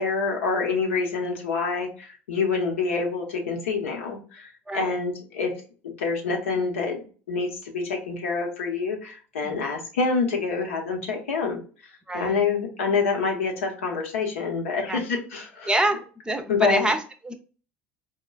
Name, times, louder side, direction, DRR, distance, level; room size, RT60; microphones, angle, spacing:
voice 1, 0.0-5.5 5.8-7.0 7.3-11.6 12.1-15.7 16.5-16.9, left 4 dB, 85° left, 1 dB, 0.9 m, -27 dB
voice 2, 4.7-5.0 9.4-9.6 12.1-12.4 14.9-15.0 15.7-16.0 16.3-17.3, right 1 dB, 10° right, 8 dB, 0.6 m, -26 dB
4.2 x 2.3 x 2.2 m, 0.39 s
hypercardioid pair, 75°, 7 cm